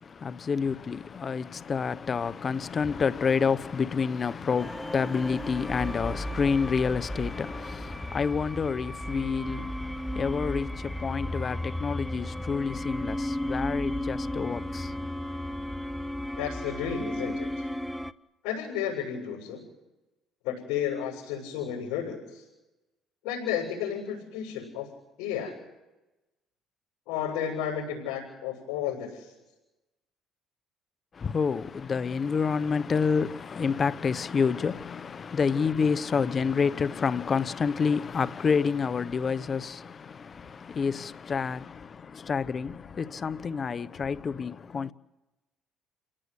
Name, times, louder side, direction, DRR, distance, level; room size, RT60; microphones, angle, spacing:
voice 1, 0.0-15.1 31.1-44.9, left 5 dB, 40° left, 1.0 m, -28 dB
sound 1, 4.6-18.1, left 1 dB, ahead, 0.9 m, -34 dB
voice 2, 16.4-17.5 18.4-19.6 20.4-22.4 23.2-24.9 25.2-25.5 27.1-29.3, left 9 dB, 80° left, 7.3 m, -32 dB
29.5 x 18.0 x 8.3 m
supercardioid pair, 90°, 0 cm